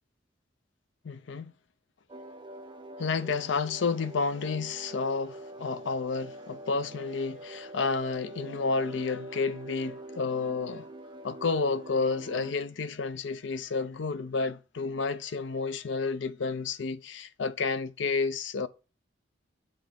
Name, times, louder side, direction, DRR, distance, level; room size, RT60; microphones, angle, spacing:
voice 1, 1.0-1.5 3.0-10.9 11.2-18.7, left 4 dB, 75° left, 0.6 m, -31 dB
sound 1, 2.1-12.5, right 1 dB, 25° right, 0.4 m, -45 dB
9.3 x 3.9 x 3.5 m
head